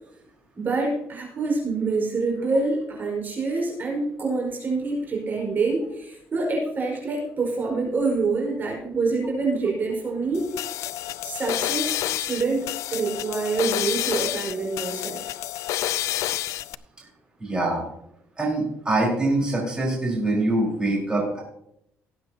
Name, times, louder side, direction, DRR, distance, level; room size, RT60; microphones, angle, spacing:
voice 1, 0.6-10.5 11.2-15.4, right 3 dB, 40° right, -1 dB, 5.0 m, -26 dB
sound 1, 10.3-16.7, left 14 dB, 80° left, 0.4 m, -29 dB
voice 2, 17.4-17.8 18.4-21.4, right 2 dB, 15° right, -4 dB, 4.7 m, -24 dB
18.5 x 8.8 x 2.9 m, 0.76 s
cardioid pair, 115°, 5 cm